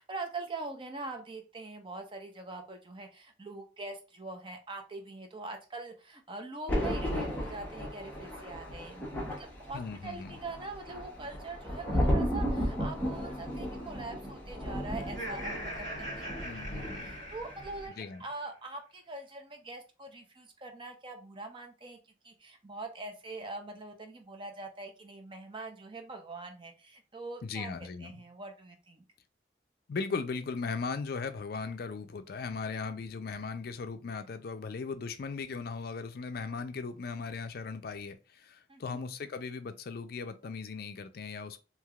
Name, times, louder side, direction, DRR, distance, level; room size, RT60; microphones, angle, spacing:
voice 1, 0.0-16.5 16.8-22.0 22.2-29.1 38.7-39.0, right 3 dB, 30° right, 0.6 m, -43 dB
Thunder, 6.7-17.3 17.6-17.9, equal, 10° left, 0.9 m, -34 dB
voice 2, 9.7-10.3 16.4-17.2 18.0-18.2 27.4-28.2 29.9-41.6, left 4 dB, 55° left, 0.4 m, -38 dB
Laughter, 15.0-18.2, equal, 80° right, 1.8 m, -41 dB
3.2 x 2.8 x 2.3 m
head